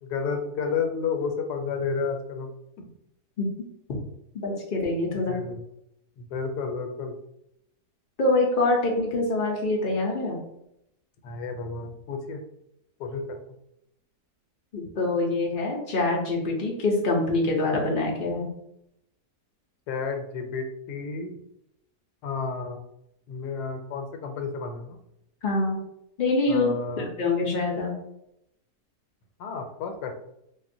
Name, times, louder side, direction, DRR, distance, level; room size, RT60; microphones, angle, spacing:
voice 1, 0.0-2.5 2.8-2.9 5.1-5.6 6.2-7.1 11.2-12.4 13.0-13.5 19.9-21.4 22.2-22.8 23.3-25.0 26.5-27.1 29.4-30.1, left 5 dB, 85° left, 5 dB, 1.1 m, -31 dB
voice 2, 4.4-5.3 8.2-10.4 14.7-18.5 25.4-25.8 26.2-26.7 27.0-27.9, left 2 dB, 60° left, -1 dB, 0.5 m, -25 dB
3.5 x 2.4 x 2.6 m, 0.80 s
omnidirectional pair, 1.7 m